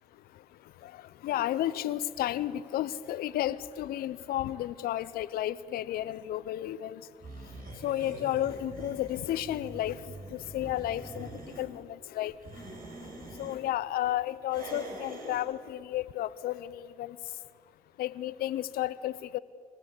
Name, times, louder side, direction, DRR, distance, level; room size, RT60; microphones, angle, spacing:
voice 1, 1.2-7.0 7.8-10.0 10.3-11.3 11.6-12.3 13.4-17.2 18.0-19.4, left 13 dB, 80° left, 16 dB, 0.7 m, -32 dB
sound 1, 7.2-11.7 12.3-13.6 14.5-15.5, right 2 dB, 70° right, 5.5 m, -44 dB
27.0 x 16.0 x 8.3 m, 2.1 s
hypercardioid pair, 45°, 15 cm